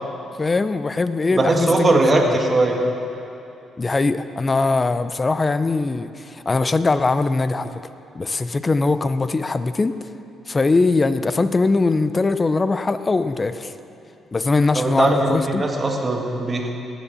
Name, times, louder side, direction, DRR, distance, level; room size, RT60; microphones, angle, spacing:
voice 1, 0.4-2.4 3.8-7.8 8.1-9.9 10.5-13.7 14.3-15.7, left 3 dB, 25° left, 12 dB, 0.6 m, -21 dB
voice 2, 1.3-2.8 14.8-16.7, right 2 dB, 30° right, 1 dB, 1.9 m, -19 dB
18.0 x 7.2 x 7.1 m, 2.8 s
cardioid pair, 90°, 0 cm